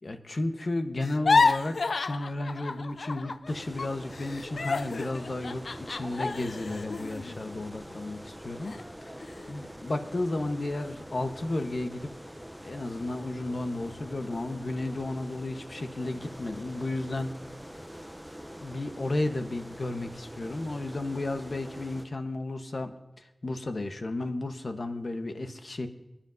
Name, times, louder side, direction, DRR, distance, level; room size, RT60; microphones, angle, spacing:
voice 1, 0.0-12.1 12.6-17.3 18.6-25.9, left 2 dB, 60° left, 7 dB, 1.0 m, -33 dB
sound 1, 1.0-3.5 3.8-8.2 8.6-8.8 9.2-9.7, left 4 dB, 80° left, 0.3 m, -30 dB
sound 2, 3.5-22.1, equal, 5° right, 0.6 m, -44 dB
25.0 x 10.0 x 2.6 m, 0.97 s
wide cardioid pair, 65°, 0 cm